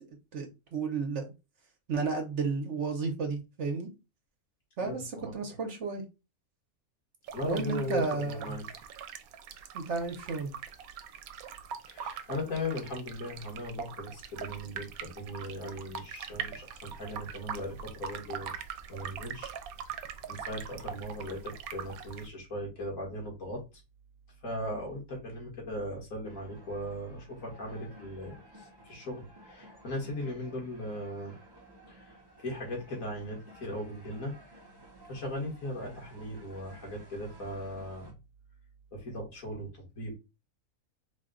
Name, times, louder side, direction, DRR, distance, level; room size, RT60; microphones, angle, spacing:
voice 1, 0.3-1.3 1.9-3.9 4.8-6.0 7.4-8.6 9.7-10.5, right 4 dB, 60° right, 1.0 m, -32 dB
voice 2, 4.8-5.4 7.3-8.6 11.9-18.6 18.9-19.5 20.3-23.6 24.4-31.3 31.9-34.3 35.1-38.1 38.9-40.2, left 1 dB, 70° left, 2.0 m, -38 dB
sound 1, 7.2-22.3, right 8 dB, 80° right, 1.0 m, -42 dB
sound 2, 26.3-38.1, equal, 25° right, 0.6 m, -55 dB
4.1 x 2.2 x 3.7 m
omnidirectional pair, 1.5 m